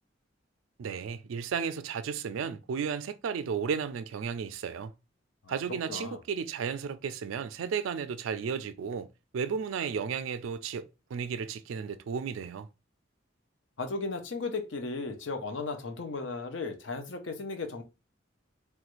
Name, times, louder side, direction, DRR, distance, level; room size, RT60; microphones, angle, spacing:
voice 1, 0.8-4.9 5.5-9.1 9.3-12.7, right 6 dB, 85° right, 0.3 m, -34 dB
voice 2, 5.9-6.2 13.8-17.8, left 3 dB, 70° left, 0.6 m, -35 dB
3.1 x 2.3 x 3.0 m
head